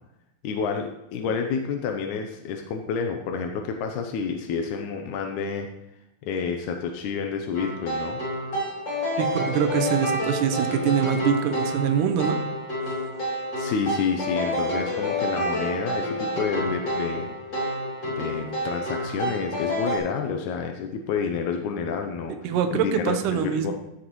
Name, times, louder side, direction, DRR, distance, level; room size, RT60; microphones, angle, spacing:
voice 1, 0.4-5.7 6.2-8.2 13.6-17.7 18.0-23.7, left 6 dB, 80° left, 4 dB, 1.7 m, -29 dB
sound 1, 7.5-20.0, equal, 30° left, 3.2 m, -29 dB
voice 2, 9.2-12.4 22.4-23.7, right 8 dB, 70° right, 7 dB, 2.1 m, -24 dB
15.0 x 6.4 x 3.1 m, 0.87 s
omnidirectional pair, 4.4 m